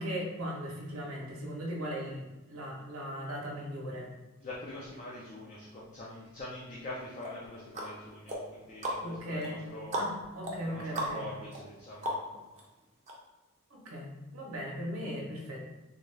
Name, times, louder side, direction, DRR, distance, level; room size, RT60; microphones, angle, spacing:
voice 1, 0.0-4.1 9.0-9.6 9.9-11.3 13.7-15.6, equal, 75° right, -2 dB, 0.8 m, -38 dB
voice 2, 4.4-10.1 10.6-12.4, left 1 dB, 35° left, -6 dB, 0.5 m, -44 dB
sound 1, 7.2-12.6 13.1-13.2, equal, 30° right, 0.6 m, -38 dB
3.9 x 2.4 x 3.2 m, 1.1 s
head